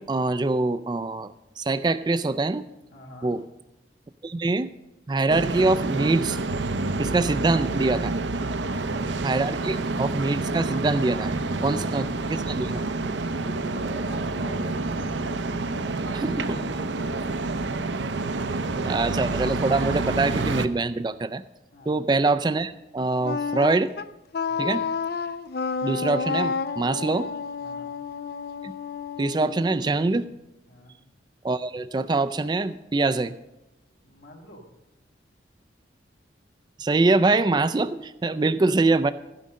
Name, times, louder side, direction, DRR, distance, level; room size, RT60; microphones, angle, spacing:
voice 1, 0.0-1.3 1.6-2.7 3.2-3.4 4.2-4.7 5.1-6.4 7.0-8.1 9.2-11.3 11.6-12.9 16.1-16.4 18.8-21.4 21.9-23.9 24.6-24.8 25.8-27.3 28.6-28.7 29.2-30.3 31.4-33.3 36.8-39.1, right 3 dB, 25° right, 12 dB, 0.3 m, -24 dB
voice 2, 2.9-3.3 8.4-9.0 11.5-12.0 13.2-17.3 21.7-22.1 24.5-24.8 27.6-27.9 30.7-31.0 34.0-34.7, equal, 75° left, 1 dB, 2.6 m, -44 dB
sound 1, 5.3-20.7, right 3 dB, 75° right, 0.6 m, -28 dB
Wind instrument woodwind instrument, 23.2-30.2, left 5 dB, 55° left, 0.4 m, -30 dB
15.5 x 5.4 x 7.4 m, 0.97 s
head